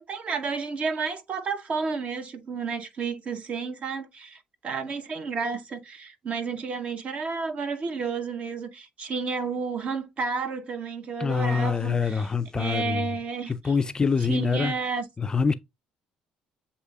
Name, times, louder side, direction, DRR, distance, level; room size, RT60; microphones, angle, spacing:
voice 1, 0.0-12.3 12.5-13.5 14.3-15.0, right 4 dB, 45° right, 0.8 m, -31 dB
voice 2, 11.2-13.1 13.5-14.8 15.2-15.5, left 5 dB, 25° left, 0.4 m, -25 dB
7.8 x 2.7 x 2.3 m
supercardioid pair, 85°, 3 cm